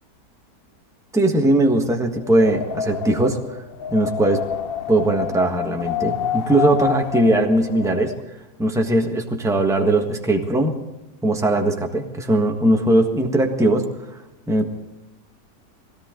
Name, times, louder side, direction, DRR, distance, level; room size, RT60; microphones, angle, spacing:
voice 1, 1.1-3.6 3.9-4.4 4.9-8.1 8.6-10.7 11.2-13.9 14.5-14.7, right 1 dB, ahead, 2 dB, 1.3 m, -19 dB
Wind, 2.2-8.2, left 8 dB, 60° left, 0.6 m, -28 dB
21.0 x 16.5 x 3.9 m, 1.0 s
omnidirectional pair, 1.9 m